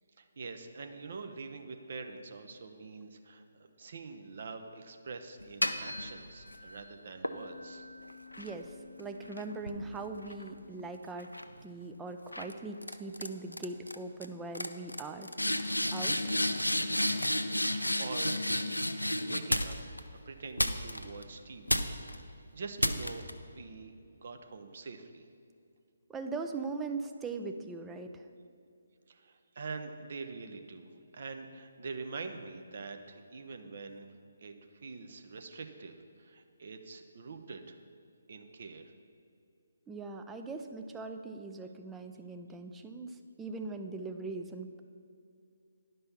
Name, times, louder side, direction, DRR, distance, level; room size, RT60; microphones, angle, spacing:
voice 1, 0.2-3.4 3.8-7.9 18.0-18.4 19.2-19.8 20.1-22.3 22.5-25.3 29.1-34.1 34.4-37.8 38.3-38.9, right 4 dB, 45° right, 6 dB, 0.7 m, -45 dB
sound 1, 5.4-6.6 7.2-10.8 11.2-11.6 12.3-12.5 12.8-13.3 13.5-13.9 14.2-14.3 14.5-20.0 20.6-21.2 21.7-22.2 22.8-23.3, left 1 dB, 85° left, 0.6 m, -32 dB
voice 2, 9.0-11.3 11.6-16.4 26.1-28.2 39.9-44.8, right 3 dB, 10° right, 5 dB, 0.4 m, -41 dB
10.5 x 5.5 x 5.7 m, 2.4 s
figure-of-eight pair, 140°, 0 cm